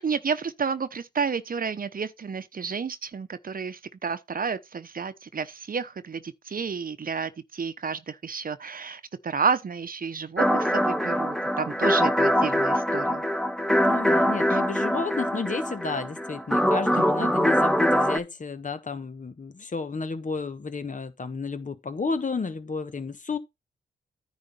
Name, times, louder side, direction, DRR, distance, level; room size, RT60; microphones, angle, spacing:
voice 1, 0.0-13.2 14.5-14.6 16.9-17.3, right 5 dB, 45° right, 0.9 m, -31 dB
sound 1, 10.4-18.2, equal, ahead, 1.1 m, -23 dB
voice 2, 13.8-23.4, left 4 dB, 40° left, 1.3 m, -32 dB
9.8 x 4.0 x 5.5 m
cardioid pair, 65°, 20 cm